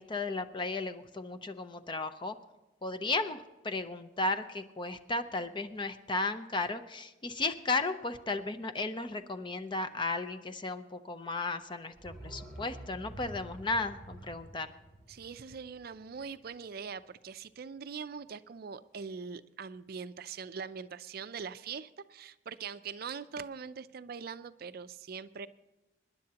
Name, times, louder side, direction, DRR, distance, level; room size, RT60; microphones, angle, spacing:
voice 1, 0.0-2.4 2.8-14.7, left 3 dB, 25° left, 9 dB, 0.7 m, -35 dB
sound 1, 11.9-16.7 17.0-17.1, right 1 dB, ahead, 2.5 m, -49 dB
voice 2, 15.1-25.5, right 6 dB, 55° right, 13 dB, 0.4 m, -42 dB
26.0 x 10.5 x 2.9 m, 1.0 s
head